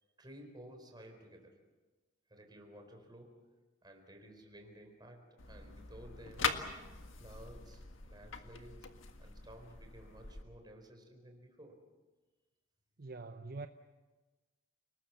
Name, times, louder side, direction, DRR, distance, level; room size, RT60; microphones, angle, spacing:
voice 1, 0.2-1.7 2.3-3.5 3.8-6.6 7.2-11.8, equal, 20° right, 4.3 m, -55 dB
sound 1, 5.4-10.4, left 5 dB, 85° left, 1.7 m, -42 dB
voice 2, 13.0-13.7, right 3 dB, 50° right, 0.8 m, -44 dB
29.5 x 20.0 x 7.1 m
head